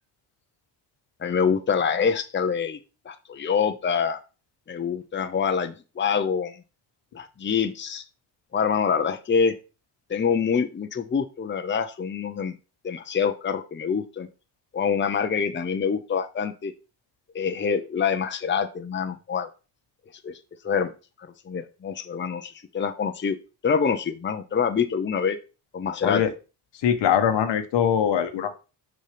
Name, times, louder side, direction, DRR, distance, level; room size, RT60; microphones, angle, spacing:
voice 1, 1.2-2.8 3.0-4.2 4.7-6.6 7.1-8.0 8.5-9.5 10.1-12.6 12.8-14.3 14.7-16.7 17.3-19.5 20.2-20.4 20.6-20.9 21.4-23.4 23.6-25.4 25.7-26.2, left 6 dB, 25° left, 8 dB, 0.8 m, -25 dB
voice 2, 26.8-28.6, left 9 dB, 75° left, 7 dB, 1.3 m, -22 dB
6.6 x 5.4 x 3.4 m, 0.32 s
supercardioid pair, 75°, 43 cm